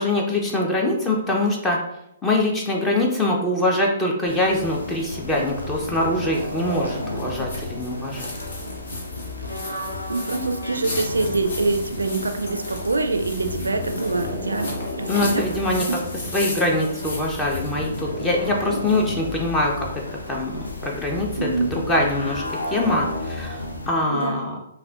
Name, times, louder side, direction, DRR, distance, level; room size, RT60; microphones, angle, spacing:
voice 1, 0.0-1.8 2.2-8.3 15.1-15.8 16.1-19.9 20.3-24.6, left 1 dB, 15° left, -1 dB, 0.5 m, -23 dB
sound 1, 4.3-23.9, left 1 dB, 80° left, 0.6 m, -32 dB
sound 2, 5.9-18.1, left 2 dB, 60° left, 1.1 m, -37 dB
voice 2, 10.1-15.4 21.4-21.7 24.1-24.4, right 3 dB, 80° right, 6 dB, 0.4 m, -25 dB
5.4 x 2.1 x 2.3 m, 0.81 s
figure-of-eight pair, 125°, 0 cm